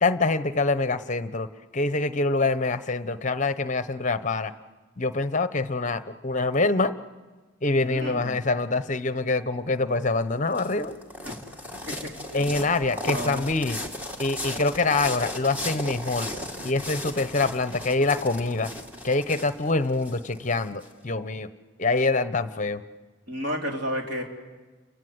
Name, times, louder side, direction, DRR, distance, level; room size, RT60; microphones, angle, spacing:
voice 1, 0.0-1.5 1.7-4.5 5.0-6.9 7.6-10.9 12.3-13.8 14.2-16.3 16.6-18.7 19.0-21.5 21.8-22.8, left 3 dB, 35° left, 12 dB, 0.9 m, -25 dB
voice 2, 7.8-8.4 11.2-11.4 11.9-12.0 12.3-12.6 12.9-13.4 23.3-24.2, equal, 55° right, 0 dB, 4.1 m, -32 dB
sound 1, 10.1-20.9, left 1 dB, 10° right, 1.8 m, -36 dB
30.0 x 25.0 x 8.0 m, 1.3 s
head